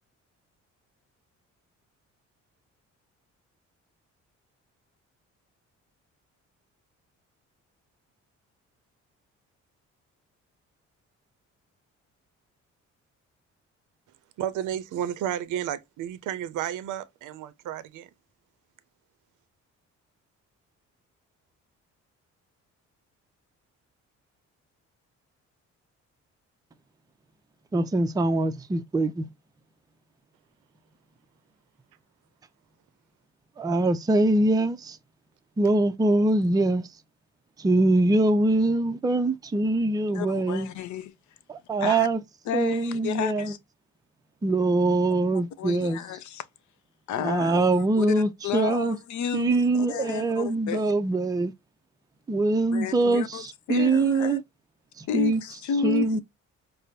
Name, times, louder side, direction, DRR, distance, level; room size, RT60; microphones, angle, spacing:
voice 1, 14.4-18.1, right 10 dB, 80° right, 0.5 m, -32 dB
voice 2, 27.7-29.3 33.6-35.0 35.6-36.9 37.6-40.7 41.5-42.2 42.5-43.5 44.4-46.0 47.2-49.0 49.3-51.5 52.3-54.4 55.0-55.4 55.8-56.2, right 2 dB, 15° right, 0.4 m, -23 dB
voice 3, 40.1-41.1 41.8-42.1 42.5-43.6 45.6-46.4 47.1-50.9 52.7-54.4 55.1-56.2, left 7 dB, 70° left, 0.6 m, -32 dB
5.0 x 2.0 x 2.7 m
cardioid pair, 90°, 30 cm